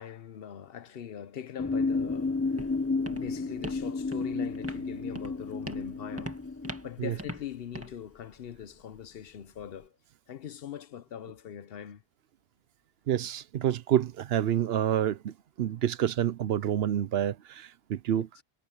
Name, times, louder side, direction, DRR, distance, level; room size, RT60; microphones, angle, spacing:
voice 1, 0.0-2.7 3.0-6.4 6.8-9.9 10.3-12.0 18.1-18.2, left 9 dB, 70° left, 0.9 m, -42 dB
sound 1, 1.6-6.9, left 3 dB, 15° left, 0.6 m, -32 dB
Walk footsteps, 1.9-9.9, right 1 dB, 15° right, 1.9 m, -45 dB
voice 2, 13.1-18.3, right 10 dB, 75° right, 0.9 m, -28 dB
omnidirectional pair, 1.0 m